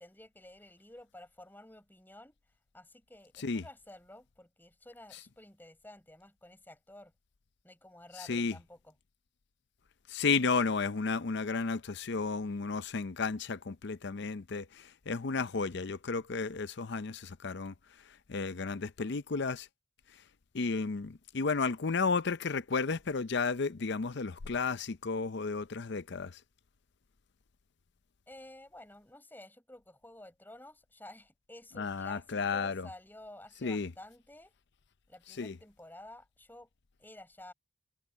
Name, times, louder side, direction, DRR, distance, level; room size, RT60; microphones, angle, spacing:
voice 1, 0.0-2.4 2.7-7.1 7.6-8.9 28.3-34.5 35.1-36.7 37.0-37.5, left 1 dB, 10° left, 6.5 m, -52 dB
voice 2, 10.1-17.7 18.3-19.7 20.5-26.3 31.8-32.9 33.6-33.9 35.4-35.6, left 4 dB, 55° left, 0.6 m, -33 dB
head